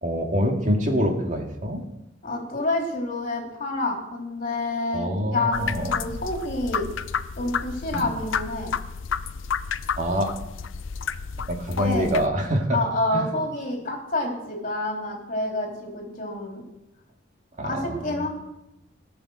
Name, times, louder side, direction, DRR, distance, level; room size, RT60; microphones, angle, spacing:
voice 1, 0.0-1.8 4.9-6.0 7.9-8.1 10.0-10.3 11.5-12.8 13.1-13.3 17.6-18.3, equal, 40° right, 2 dB, 2.2 m, -25 dB
voice 2, 2.2-6.9 7.4-8.7 11.8-12.1 12.7-16.6 17.6-18.3, left 2 dB, 40° left, 1 dB, 3.3 m, -28 dB
sound 1, 5.5-12.3, left 6 dB, 75° left, 0.6 m, -31 dB
18.5 x 7.1 x 6.3 m, 0.90 s
head